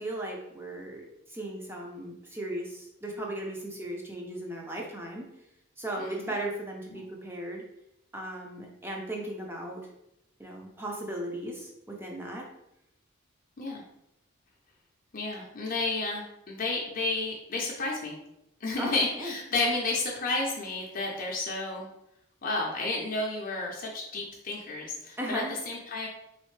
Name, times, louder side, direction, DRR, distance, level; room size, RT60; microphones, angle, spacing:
voice 1, 0.0-5.3 5.8-7.6 8.1-9.8 10.4-12.5 18.8-19.3 25.2-25.6, right 1 dB, 10° right, -1 dB, 0.5 m, -37 dB
voice 2, 6.0-6.3 6.9-7.0 13.6-13.8 15.1-18.2 18.6-21.9 22.4-26.1, left 2 dB, 40° left, -2 dB, 0.5 m, -31 dB
3.5 x 3.2 x 3.2 m, 0.83 s
head